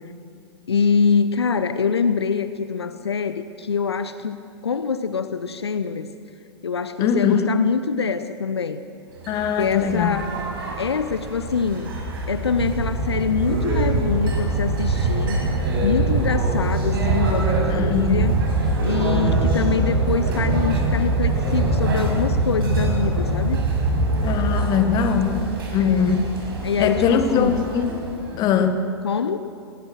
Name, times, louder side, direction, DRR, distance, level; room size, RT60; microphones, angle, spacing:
voice 1, 0.7-6.1 6.6-8.8 9.6-10.3 10.8-11.9 12.3-15.4 15.8-18.4 18.8-23.6 25.8-26.2 26.6-27.7 29.0-29.4, left 6 dB, 70° left, 12 dB, 0.8 m, -24 dB
voice 2, 7.0-7.5 9.3-10.2 17.7-18.3 24.2-26.3 26.8-27.9 28.3-28.9, left 7 dB, 30° left, 8 dB, 1.6 m, -21 dB
sound 1, 9.2-28.4, right 2 dB, 55° right, 6.4 m, -23 dB
22.0 x 20.0 x 6.4 m, 2.5 s
figure-of-eight pair, 105°, 14 cm